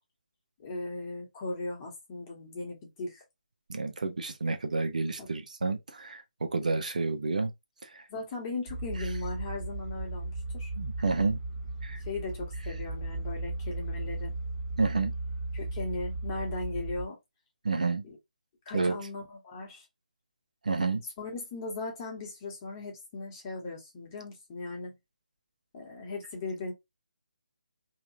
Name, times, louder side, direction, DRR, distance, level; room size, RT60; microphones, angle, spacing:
voice 1, 0.6-3.2 5.2-5.3 8.1-10.7 12.1-14.3 15.5-17.2 18.0-18.2 18.6-19.8 21.2-24.9 25.7-26.7, left 3 dB, 25° left, 1.3 m, -38 dB
voice 2, 3.7-7.5 7.8-8.0 10.8-11.4 11.8-12.0 14.8-15.1 17.6-18.0 18.7-19.0 20.6-21.0, right 3 dB, 60° right, 0.8 m, -30 dB
sound 1, 8.7-17.1, right 2 dB, 25° right, 1.5 m, -36 dB
3.4 x 2.9 x 2.7 m
figure-of-eight pair, 145°, 5 cm